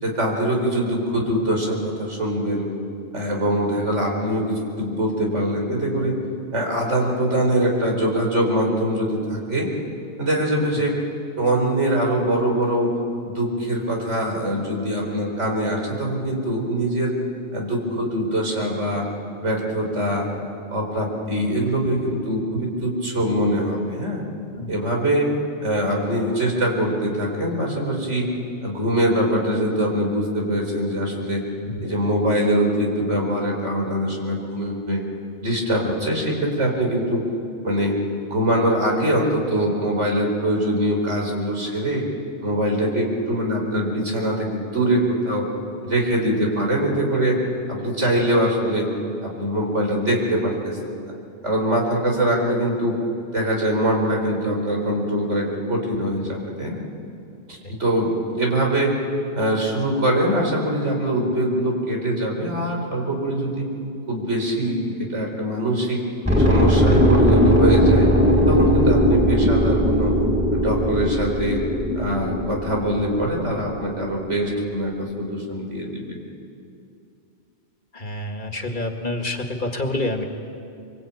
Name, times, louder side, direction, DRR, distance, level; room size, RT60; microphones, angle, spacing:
voice 1, 0.0-2.7 3.1-6.1 6.5-9.7 10.2-10.9 11.4-12.9 13.2-17.1 17.5-19.1 19.4-20.3 20.7-24.2 24.7-25.3 25.6-28.3 28.6-31.4 31.8-35.0 35.4-37.2 37.6-37.9 38.3-42.0 42.4-45.4 45.8-47.4 47.7-48.9 49.2-51.0 51.4-53.0 53.3-56.8 57.5-58.9 59.3-63.7 64.1-66.0 66.4-68.1 68.5-70.1 70.5-71.6 72.0-76.0, right 1 dB, 90° right, 0 dB, 4.8 m, -23 dB
sound 1, 66.2-74.0 74.3-74.4, equal, 15° right, 5.3 m, -19 dB
voice 2, 78.0-80.2, left 2 dB, 45° left, 4 dB, 2.1 m, -27 dB
24.5 x 23.5 x 8.9 m, 2.6 s
omnidirectional pair, 1.2 m